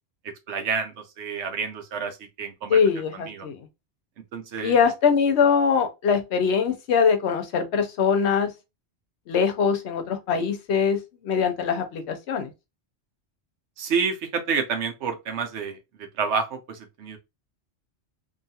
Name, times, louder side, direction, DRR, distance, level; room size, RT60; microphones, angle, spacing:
voice 1, 0.5-2.8 3.1-3.5 4.3-4.8 13.8-17.2, right 5 dB, 85° right, 1.0 m, -29 dB
voice 2, 2.7-3.7 4.6-8.5 9.3-12.5, left 6 dB, 75° left, 0.9 m, -22 dB
2.6 x 2.3 x 2.7 m
omnidirectional pair, 1.2 m